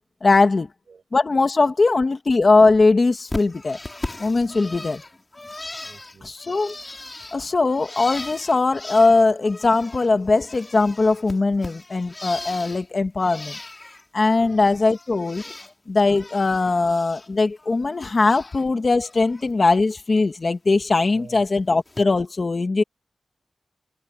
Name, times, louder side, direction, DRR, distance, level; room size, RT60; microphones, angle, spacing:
voice 1, 0.2-0.7 1.1-3.8 4.2-5.0 6.2-6.7 7.3-13.6 14.1-15.4 15.9-22.8, left 3 dB, 35° left, 1.9 m, -20 dB
Bird, 3.3-10.1 10.3-12.9 13.2-14.0 14.4-15.7 16.0-17.3 17.6-18.7 19.0-19.5 20.7-20.9 21.9-22.0, left 2 dB, 20° left, 3.5 m, -38 dB
voice 2, 5.8-6.3 14.3-14.6 21.1-21.5, right 5 dB, 60° right, 7.5 m, -47 dB
wide cardioid pair, 155°, 0 cm